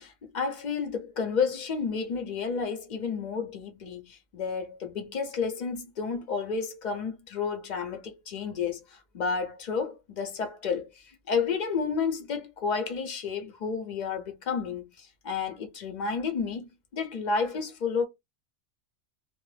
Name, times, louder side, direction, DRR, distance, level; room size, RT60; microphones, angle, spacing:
voice 1, 0.0-16.7 16.9-18.0, left 5 dB, 50° left, 0.6 m, -31 dB
2.1 x 2.0 x 3.1 m
omnidirectional pair, 1.3 m